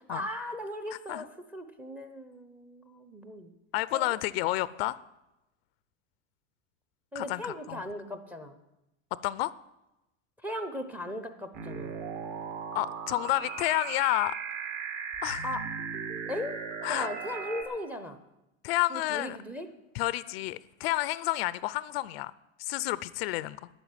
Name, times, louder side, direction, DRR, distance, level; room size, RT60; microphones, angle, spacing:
voice 1, 0.0-3.6 3.9-4.2 7.1-8.6 10.4-12.0 15.4-15.6 16.3-16.6 16.9-18.2 18.9-19.7, left 1 dB, 5° right, 9 dB, 0.8 m, -38 dB
voice 2, 3.7-5.0 7.1-7.8 9.2-9.5 12.7-14.4 15.2-15.4 16.8-17.1 18.6-19.4 19.9-22.3 22.6-23.7, left 17 dB, 60° left, 18 dB, 0.6 m, -30 dB
sound 1, 11.5-17.6, right 5 dB, 45° right, 3.4 m, -37 dB
12.5 x 8.9 x 9.8 m, 0.96 s
supercardioid pair, 165°, 34 cm